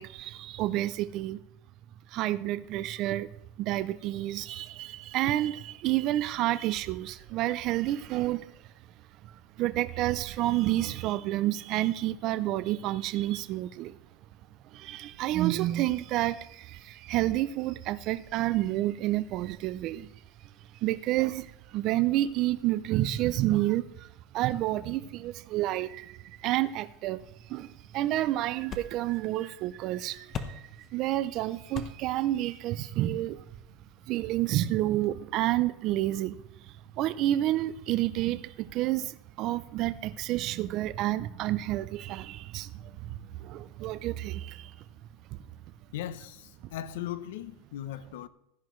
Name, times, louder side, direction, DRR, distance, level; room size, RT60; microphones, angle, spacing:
voice 1, 0.0-1.4 2.1-3.3 3.6-8.7 9.2-14.0 14.6-20.1 20.7-24.1 24.3-33.4 34.1-44.8 45.3-45.4 46.6-46.7, right 15 dB, 40° right, 0.4 m, -30 dB
sound 1, 27.0-34.1, left 6 dB, 25° left, 0.8 m, -45 dB
voice 2, 45.9-48.3, left 12 dB, 85° left, 0.7 m, -38 dB
15.5 x 11.5 x 3.1 m
supercardioid pair, 170°, 0 cm